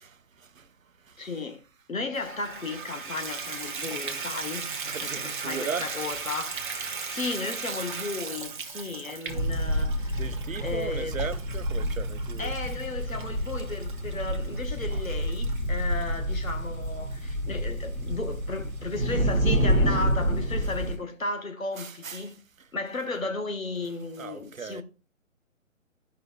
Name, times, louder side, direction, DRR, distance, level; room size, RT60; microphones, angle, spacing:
voice 1, 0.0-0.7 1.1-1.3 4.8-6.0 10.2-12.5 14.9-15.0 21.8-22.3 24.2-24.8, right 6 dB, 80° right, 0.7 m, -37 dB
voice 2, 1.2-1.6 1.9-10.4 10.6-11.3 12.4-22.3 22.7-24.8, left 3 dB, 80° left, 1.5 m, -34 dB
Water tap faucet / Bathtub (filling or washing), 2.1-16.5 17.1-17.2 17.7-17.8 18.1-18.2, right 5 dB, 40° right, 0.8 m, -38 dB
sound 1, 9.3-21.0, equal, 5° right, 0.9 m, -28 dB
13.5 x 5.5 x 2.3 m
figure-of-eight pair, 140°, 40 cm